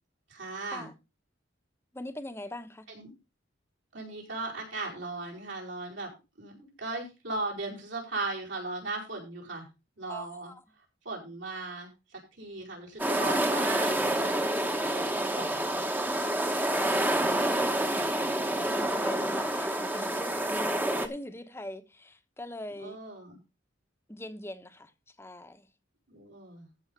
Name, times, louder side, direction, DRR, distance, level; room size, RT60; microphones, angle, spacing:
voice 1, 0.3-0.9 2.9-3.1 3.9-6.1 6.4-9.7 10.0-10.5 11.0-15.8 22.8-23.4 26.1-26.7, right 3 dB, 75° right, 4.9 m, -38 dB
voice 2, 1.9-2.8 10.1-10.6 16.7-18.3 18.6-23.0 24.1-24.9 25.2-25.7, left 1 dB, 15° left, 1.1 m, -42 dB
sound 1, 13.0-21.1, right 1 dB, 10° right, 1.1 m, -28 dB
14.0 x 5.5 x 5.4 m
head